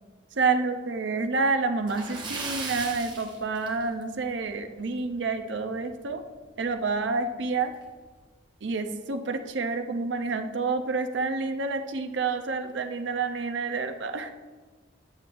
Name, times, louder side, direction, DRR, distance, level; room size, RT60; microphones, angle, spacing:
voice 1, 0.4-6.2 6.6-7.7 8.6-14.3, right 4 dB, 75° right, 7 dB, 0.6 m, -28 dB
Splash splatter, 1.8-4.2 4.5-4.7 5.1-5.2 6.7-6.8 7.1-7.2 7.8-8.1, right 3 dB, 25° right, 0.9 m, -36 dB
7.9 x 7.6 x 2.5 m, 1.4 s
head